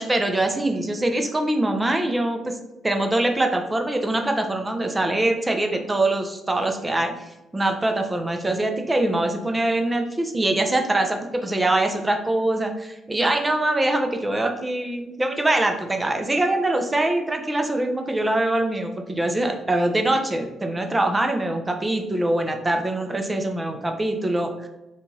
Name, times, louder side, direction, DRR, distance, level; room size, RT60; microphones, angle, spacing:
voice 1, 0.0-2.6 2.8-7.1 7.5-24.7, right 1 dB, 15° right, 4 dB, 0.4 m, -23 dB
2.5 x 2.3 x 3.1 m, 0.96 s
cardioid pair, 90°, 0 cm